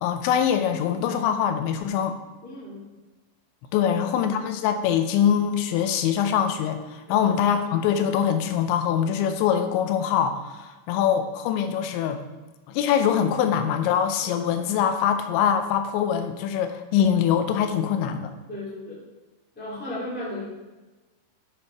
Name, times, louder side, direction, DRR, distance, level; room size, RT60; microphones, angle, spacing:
voice 1, 0.0-2.2 3.7-12.2 12.7-18.3, left 8 dB, 85° left, 7 dB, 3.0 m, -23 dB
voice 2, 2.4-2.9 7.1-7.2 14.2-14.3 18.5-19.0 19.5-20.5, left 1 dB, 5° left, -6 dB, 1.8 m, -35 dB
8.6 x 7.2 x 4.7 m, 1.2 s
omnidirectional pair, 5.2 m